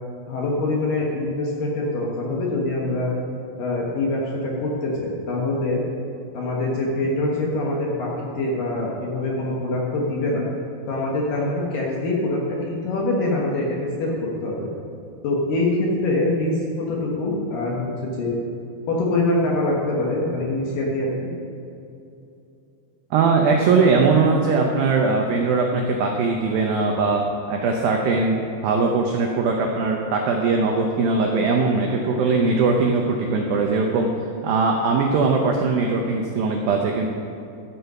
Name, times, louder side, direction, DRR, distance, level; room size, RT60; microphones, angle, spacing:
voice 1, 0.3-3.1 3.6-5.8 6.3-10.5 10.9-14.7 15.2-18.4 18.9-21.3, left 2 dB, 65° left, -3 dB, 2.4 m, -24 dB
voice 2, 23.1-34.1 34.4-37.1, right 4 dB, 85° right, 1 dB, 2.0 m, -20 dB
12.5 x 8.0 x 5.5 m, 2.7 s
omnidirectional pair, 5.3 m